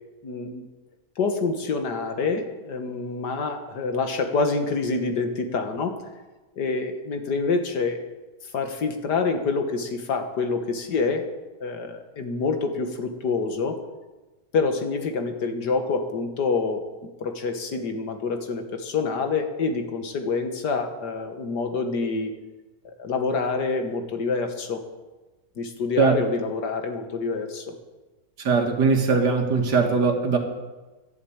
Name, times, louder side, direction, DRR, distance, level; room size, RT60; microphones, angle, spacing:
voice 1, 0.2-0.6 1.2-5.9 6.6-8.0 8.5-11.3 11.6-13.8 14.5-16.8 17.2-22.3 22.9-24.8 25.6-27.7, left 4 dB, 75° left, 6 dB, 2.0 m, -27 dB
voice 2, 28.4-30.4, right 4 dB, 80° right, 4 dB, 2.4 m, -20 dB
11.5 x 11.5 x 8.6 m, 1.2 s
omnidirectional pair, 1.8 m